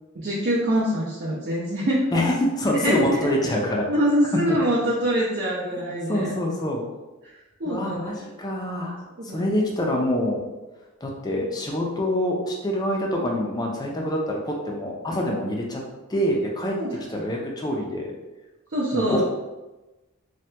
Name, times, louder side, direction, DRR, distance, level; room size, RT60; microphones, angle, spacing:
voice 1, 0.2-2.2 2.8-3.2 3.9-6.3 7.2-7.3 7.6-8.3 9.2-9.5 16.8-17.3 18.7-19.2, equal, 45° right, -7 dB, 0.5 m, -24 dB
voice 2, 2.1-3.9 4.3-4.6 6.1-6.8 7.6-9.0 9.3-10.4 11.0-15.8 16.1-16.8 17.1-18.1 18.9-19.2, left 1 dB, 20° left, -1 dB, 0.4 m, -25 dB
2.8 x 2.2 x 3.2 m, 1.1 s
head